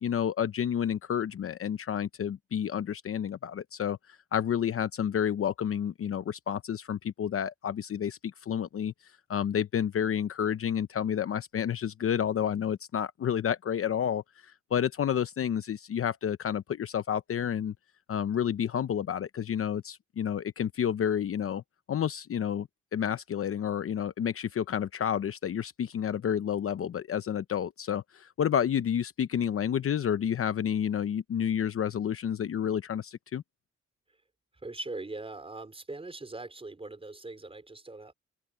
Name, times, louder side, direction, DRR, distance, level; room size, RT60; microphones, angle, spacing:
voice 1, 0.0-17.7 18.1-21.6 21.9-33.4, left 9 dB, 45° left, 0.8 m, -30 dB
voice 2, 34.6-38.1, right 2 dB, 20° right, 4.9 m, -41 dB
open air
cardioid pair, 90°, 30 cm